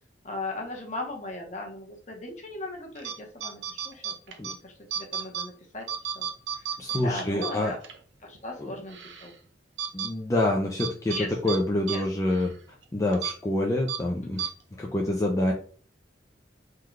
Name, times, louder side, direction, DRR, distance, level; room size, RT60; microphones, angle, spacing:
voice 1, 0.2-4.1 4.4-6.3 6.6-7.8 8.2-9.4 11.1-11.3 11.9-12.0, left 2 dB, 40° left, 2 dB, 0.8 m, -38 dB
sound 1, 3.0-3.1 3.4-4.5 4.9-5.5 5.8-8.0 8.3-8.4 8.9-9.3 9.8-10.1 10.8-11.2 11.5-11.6 11.9-12.0 12.3-12.5 13.1-13.3 13.9-14.0 14.4-14.5, right 8 dB, 75° right, 0.5 m, -32 dB
voice 2, 6.8-7.8 8.6-8.7 9.9-12.5 12.9-14.5 14.8-15.5, left 1 dB, 15° left, 0 dB, 0.3 m, -26 dB
3.6 x 2.2 x 3.1 m, 0.42 s
head